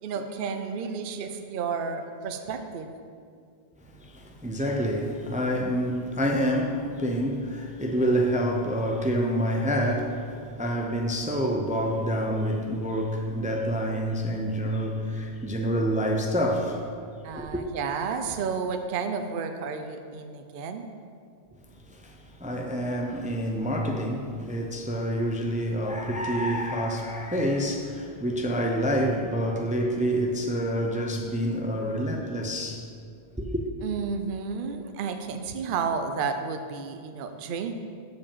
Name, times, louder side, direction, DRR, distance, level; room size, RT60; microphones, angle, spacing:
voice 1, 0.0-2.9 17.2-20.9 33.8-37.7, right 5 dB, 60° right, 0.7 m, -31 dB
voice 2, 3.9-16.9 17.3-17.6 21.9-32.9 33.4-33.6, equal, 10° right, 0.4 m, -27 dB
7.5 x 4.9 x 7.2 m
omnidirectional pair, 1.1 m